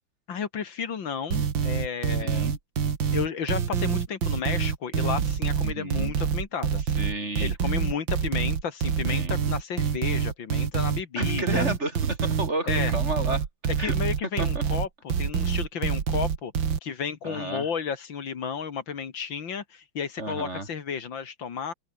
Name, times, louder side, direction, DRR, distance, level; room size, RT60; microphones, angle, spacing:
voice 1, 0.3-2.5 3.1-7.0 7.4-11.7 12.7-12.9 13.8-16.5 16.8-21.7, left 6 dB, 60° left, 2.5 m, -32 dB
sound 1, 1.3-16.8, right 7 dB, 60° right, 2.6 m, -26 dB
voice 2, 2.2-2.6 5.6-6.1 7.0-7.5 9.1-9.4 11.2-13.4 13.8-13.9 14.4-14.6 17.2-17.7 20.2-20.7, right 2 dB, 30° right, 4.0 m, -32 dB
open air
omnidirectional pair, 2.4 m